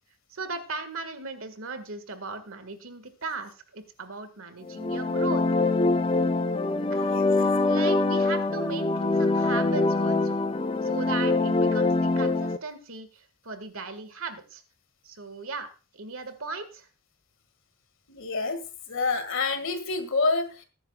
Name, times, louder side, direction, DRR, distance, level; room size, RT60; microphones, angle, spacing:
voice 1, 0.3-5.4 6.9-10.4 10.8-14.6 15.0-15.7 15.9-16.9, right 3 dB, 65° right, 9 dB, 1.8 m, -37 dB
sound 1, 4.7-12.6, left 2 dB, 25° left, 0.6 m, -24 dB
voice 2, 6.9-7.3 18.1-18.6 18.9-20.6, left 3 dB, 60° left, 8 dB, 1.9 m, -28 dB
20.5 x 9.9 x 2.3 m, 0.33 s
head